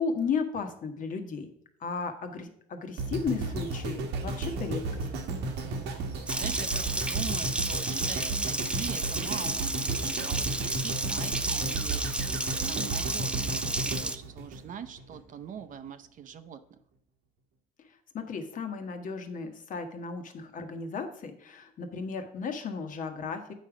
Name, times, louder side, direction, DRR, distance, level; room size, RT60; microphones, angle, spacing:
voice 1, 0.0-1.5 1.8-5.0 18.1-23.4, left 5 dB, 50° left, 6 dB, 1.3 m, -34 dB
sound 1, 3.0-15.2 15.7-15.8, right 3 dB, 85° right, 1.3 m, -34 dB
voice 2, 5.4-5.9 6.3-16.8, right 8 dB, 50° right, 9 dB, 0.7 m, -43 dB
Water tap faucet, 6.3-14.2, right 2 dB, 5° right, 0.4 m, -32 dB
8.4 x 5.2 x 4.9 m, 0.71 s
cardioid pair, 110°, 17 cm